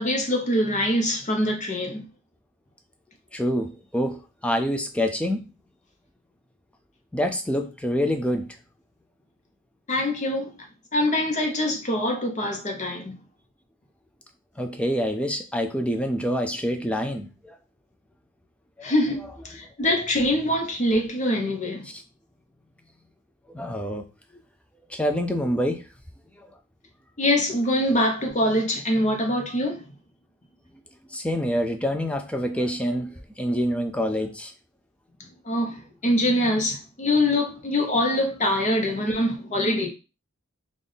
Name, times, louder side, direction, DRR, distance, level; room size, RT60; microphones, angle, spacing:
voice 1, 0.0-2.0 9.9-10.5 10.9-13.2 18.8-21.9 27.2-29.8 35.5-39.9, left 1 dB, 35° left, 0.8 m, -24 dB
voice 2, 3.3-5.4 7.1-8.5 14.6-17.5 18.8-18.9 21.9-22.0 23.5-24.0 24.9-25.8 26.4-26.5 31.1-34.5, equal, 5° left, 0.4 m, -26 dB
3.5 x 2.4 x 3.9 m
head